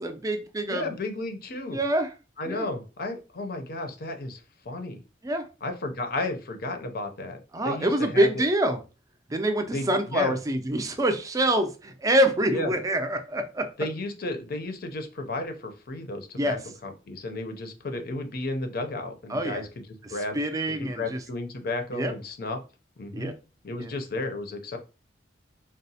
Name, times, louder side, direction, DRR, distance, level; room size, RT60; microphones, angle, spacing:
voice 1, 0.0-1.0 1.7-2.1 2.5-2.7 5.2-5.5 7.5-8.8 9.3-13.7 16.4-16.6 19.3-19.6 20.0-21.2 21.9-22.1 23.1-23.3 23.8-23.9, right 1 dB, 20° right, 7 dB, 0.4 m, -26 dB
voice 2, 0.7-1.8 2.4-4.4 4.7-5.0 5.6-7.4 7.6-8.4 9.7-10.3 12.5-12.7 13.8-19.8 20.1-20.4 20.7-22.6 23.0-23.3 23.6-24.8, left 2 dB, 55° left, 5 dB, 0.5 m, -33 dB
3.9 x 2.0 x 2.7 m, 0.31 s
head